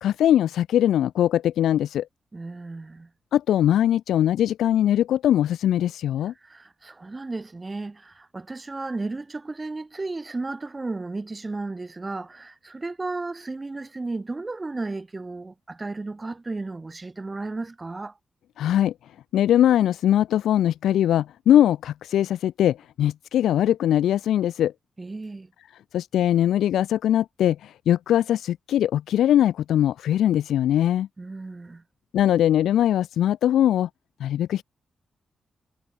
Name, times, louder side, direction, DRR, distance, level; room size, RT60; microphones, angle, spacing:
voice 1, 0.0-2.1 3.3-6.3 18.6-18.9 19.3-24.7 25.9-31.1 32.1-33.9 34.2-34.6, left 11 dB, 85° left, 0.6 m, -21 dB
voice 2, 2.3-3.1 6.2-18.2 25.0-25.5 31.2-31.8, right 3 dB, 30° right, 5.7 m, -34 dB
supercardioid pair, 55°, 0 cm